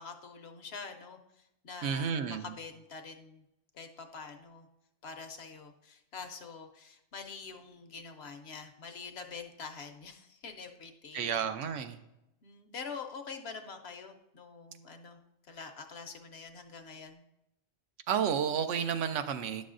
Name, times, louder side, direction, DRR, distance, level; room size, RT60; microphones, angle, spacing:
voice 1, 0.0-3.4 3.7-4.7 5.0-11.5 12.4-15.2 15.5-17.2, left 5 dB, 65° left, 6 dB, 0.8 m, -45 dB
voice 2, 1.8-2.5 11.1-12.0 18.1-19.7, right 8 dB, 75° right, 9 dB, 0.9 m, -31 dB
10.0 x 6.2 x 2.5 m, 0.86 s
omnidirectional pair, 1.3 m